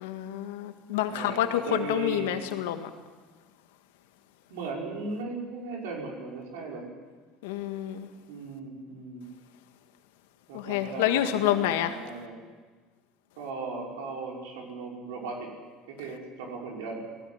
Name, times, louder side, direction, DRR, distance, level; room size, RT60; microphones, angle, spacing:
voice 1, 0.0-1.6 1.9-2.9 7.4-8.1 10.5-11.9, left 12 dB, 80° left, 8 dB, 1.8 m, -28 dB
voice 2, 1.1-2.4 4.5-6.8 8.3-9.2 10.5-12.4 13.4-15.5 15.9-17.0, right 4 dB, 80° right, -1 dB, 5.9 m, -37 dB
19.5 x 17.0 x 9.7 m, 1.4 s
hypercardioid pair, 85°, 0 cm